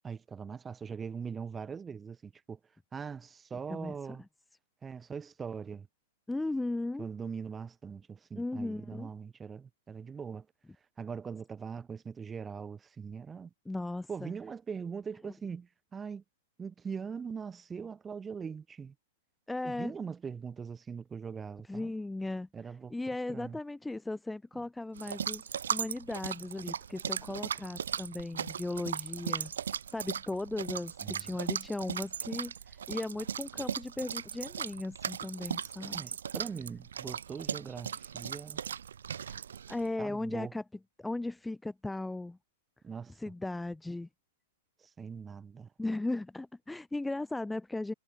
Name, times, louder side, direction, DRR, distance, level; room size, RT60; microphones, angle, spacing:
voice 1, 0.0-2.6 2.9-4.2 4.8-5.9 7.0-10.5 11.0-13.5 14.1-16.2 16.6-18.9 19.6-21.9 22.5-22.9 23.3-23.6 31.0-31.2 35.9-38.6 40.0-40.5 42.8-43.2 44.8-45.7, right 6 dB, 15° right, 5.9 m, -41 dB
voice 2, 3.7-4.2 6.3-7.1 8.4-9.1 13.7-14.3 19.5-19.9 21.7-22.5 22.9-25.4 25.7-29.5 29.9-36.0 39.2-40.6 41.0-42.4 43.2-44.1 45.8-47.9, left 2 dB, 5° left, 3.7 m, -37 dB
sound 1, 25.0-39.9, right 8 dB, 65° right, 4.1 m, -37 dB
figure-of-eight pair, 100°, 0 cm